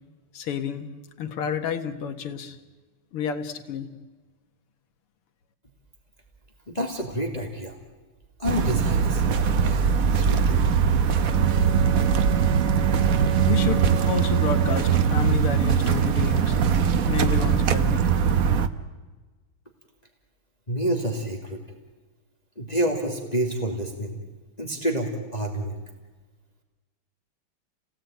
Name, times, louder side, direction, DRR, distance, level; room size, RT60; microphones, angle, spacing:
voice 1, 0.3-0.9 1.2-2.6 3.1-3.9 13.5-16.6 17.1-18.0, left 7 dB, 85° left, 7 dB, 2.4 m, -30 dB
voice 2, 6.7-7.8 8.4-10.6 20.7-21.6 22.6-24.2 24.6-25.8, right 1 dB, 20° left, 2 dB, 2.4 m, -28 dB
sound 1, 8.4-18.7, right 7 dB, 50° right, 1.1 m, -21 dB
Bowed string instrument, 11.1-15.5, right 12 dB, 80° right, 1.9 m, -31 dB
30.0 x 18.0 x 9.1 m, 1.3 s
omnidirectional pair, 2.4 m